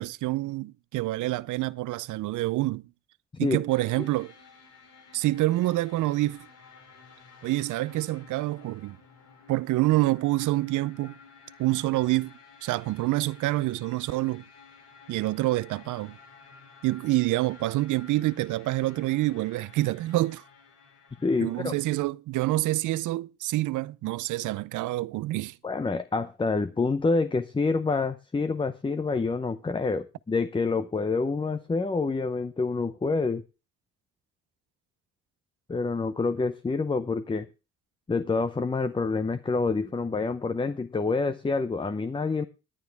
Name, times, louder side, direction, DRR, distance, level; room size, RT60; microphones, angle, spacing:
voice 1, 0.0-2.9 3.4-4.3 5.1-6.5 7.4-9.0 9.5-11.2 11.6-12.3 12.6-14.4 15.1-16.2 16.8-20.4 21.4-25.6, right 17 dB, 80° right, 0.5 m, -27 dB
sound 1, 3.7-21.9, left 5 dB, 55° left, 3.3 m, -53 dB
voice 2, 21.2-21.8 25.6-33.4 35.7-37.5 38.1-42.4, left 4 dB, 15° left, 0.7 m, -27 dB
17.5 x 9.5 x 3.4 m
cardioid pair, 90°, 30 cm